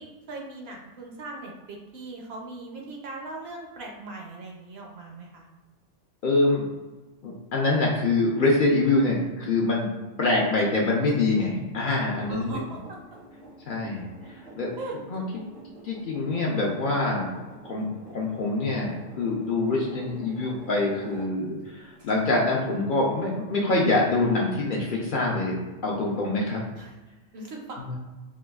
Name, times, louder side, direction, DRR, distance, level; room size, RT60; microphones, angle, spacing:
voice 1, 0.0-5.5 12.3-13.0 14.8-15.0 26.7-26.9 27.3-28.0, right 2 dB, 65° right, 0 dB, 0.8 m, -39 dB
voice 2, 6.2-6.7 7.2-9.9 10.2-12.6 13.7-14.7 15.1-15.4 15.8-17.3 17.6-26.6 27.8-28.0, left 2 dB, 60° left, -2 dB, 0.6 m, -25 dB
sound 1, 11.1-21.6 22.0-22.1, right 2 dB, 85° right, 2.0 m, -47 dB
4.8 x 2.3 x 2.3 m, 1.2 s
omnidirectional pair, 1.3 m